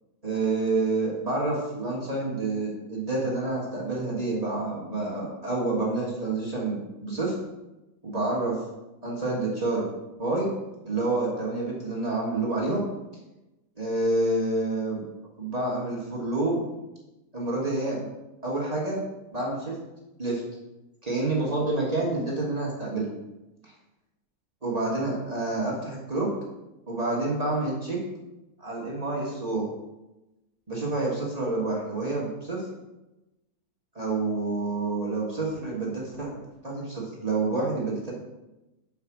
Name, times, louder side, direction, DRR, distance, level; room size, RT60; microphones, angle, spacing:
voice 1, 0.2-7.4 8.0-8.6 9.0-9.9 10.2-10.5 10.8-12.8 13.8-15.0 15.4-16.6 17.3-18.1 18.4-19.0 19.3-19.8 20.2-20.4 21.0-23.1 23.6-23.7 24.6-26.3 26.9-28.0 28.6-29.7 30.7-32.6 33.9-36.3 36.6-38.1, right 2 dB, 25° right, -5 dB, 1.4 m, -28 dB
4.9 x 4.8 x 5.9 m, 1.0 s
omnidirectional pair, 1.6 m